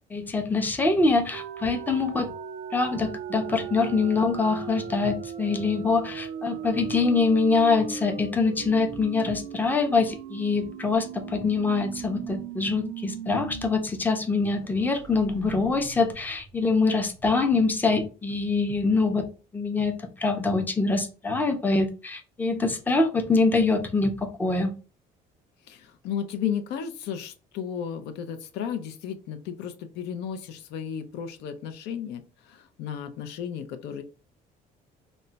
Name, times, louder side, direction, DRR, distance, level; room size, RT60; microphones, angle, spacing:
voice 1, 0.1-2.3 2.7-19.3 19.5-24.7, left 3 dB, 10° left, 0.5 m, -24 dB
sound 1, 1.3-13.8 14.1-14.2 14.6-17.3, right 7 dB, 60° right, 0.4 m, -38 dB
voice 2, 25.7-34.0, left 8 dB, 80° left, 0.5 m, -34 dB
2.2 x 2.1 x 3.8 m
cardioid pair, 110°, 17 cm